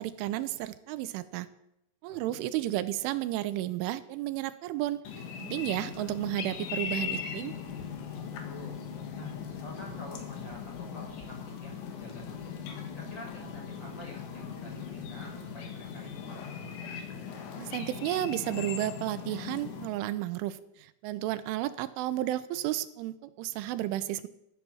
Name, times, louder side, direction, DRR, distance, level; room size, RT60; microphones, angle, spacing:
voice 1, 0.0-1.5 2.0-5.0 5.4-7.6 17.6-24.3, right 14 dB, 80° right, 13 dB, 3.1 m, -32 dB
sound 1, 5.1-19.9, left 6 dB, 70° left, 4.1 m, -40 dB
sound 2, 5.7-17.4, left 8 dB, 85° left, 5.0 m, -47 dB
voice 2, 8.4-8.8 9.1-12.6 12.9-17.0, equal, 25° left, 0 dB, 5.4 m, -48 dB
15.0 x 12.0 x 7.2 m, 0.80 s
omnidirectional pair, 5.8 m